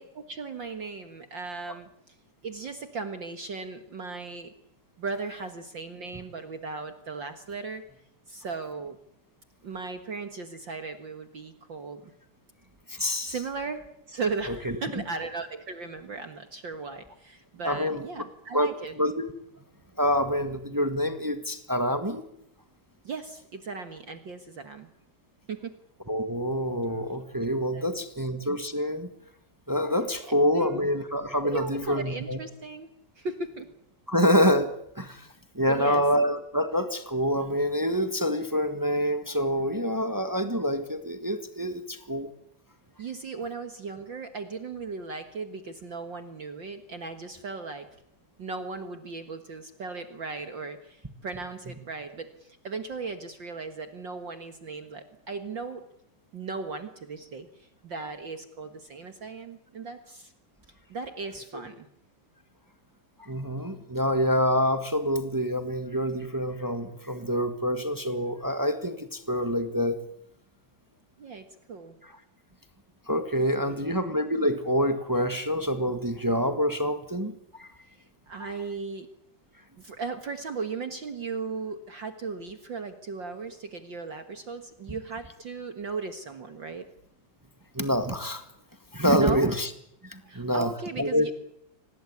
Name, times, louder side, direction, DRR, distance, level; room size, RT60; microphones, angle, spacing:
voice 1, 0.0-2.1 2.4-4.5 5.0-7.8 8.3-9.0 9.6-12.1 13.2-18.9 23.0-24.9 25.5-25.8 27.7-28.1 30.5-30.8 31.4-32.9 33.2-33.7 35.7-36.0 43.0-47.9 48.4-55.8 56.3-60.3 60.9-61.9 71.2-71.9 73.6-74.0 78.3-79.1 79.8-86.9 89.1-89.5 90.3-91.3, right 4 dB, 45° right, 9 dB, 1.9 m, -37 dB
voice 2, 12.9-13.3 14.6-14.7 17.6-18.0 18.5-18.7 19.0-19.3 20.0-22.2 26.1-29.1 29.7-32.4 34.1-35.3 35.5-42.3 63.2-70.0 73.1-77.7 78.4-78.5 87.7-88.4 88.9-89.7 90.0-91.3, equal, 15° right, 9 dB, 0.6 m, -26 dB
25.0 x 19.0 x 9.7 m, 0.75 s
omnidirectional pair, 3.4 m